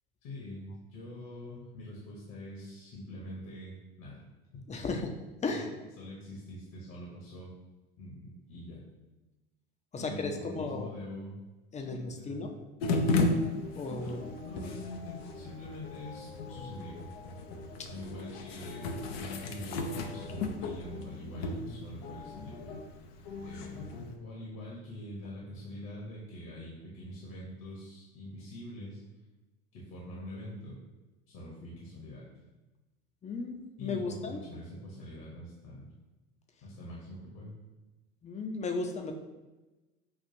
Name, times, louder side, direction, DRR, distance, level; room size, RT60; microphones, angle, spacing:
voice 1, 0.2-4.2 4.8-4.9 5.5-5.7 6.0-7.5 8.0-8.8 10.0-11.4 11.8-12.6 14.0-17.0 17.9-22.7 23.4-29.0 29.7-30.8 31.3-32.3 33.8-35.9 36.6-37.5, left 1 dB, 60° left, -4 dB, 1.2 m, -44 dB
voice 2, 4.7-5.1 5.4-5.7 9.9-10.9 11.7-12.5 13.8-14.2 17.8-17.9 33.2-34.4 38.2-39.1, left 3 dB, 20° left, 4 dB, 0.6 m, -35 dB
sound 1, 12.8-24.1, left 3 dB, 75° left, 0.6 m, -35 dB
6.1 x 2.4 x 2.7 m, 1.1 s
hypercardioid pair, 85°, 31 cm